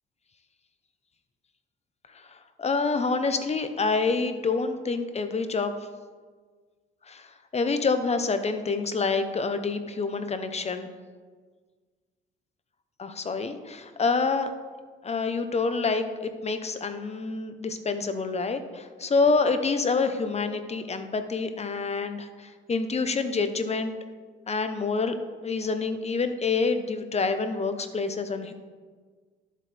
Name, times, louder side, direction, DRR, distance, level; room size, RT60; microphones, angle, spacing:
voice 1, 2.1-5.7 7.1-7.3 7.5-10.9 13.0-14.5 15.0-23.9 24.5-25.1 25.4-28.5, left 4 dB, 35° left, 8 dB, 0.9 m, -27 dB
12.5 x 7.5 x 3.4 m, 1.5 s
cardioid pair, 90°, 20 cm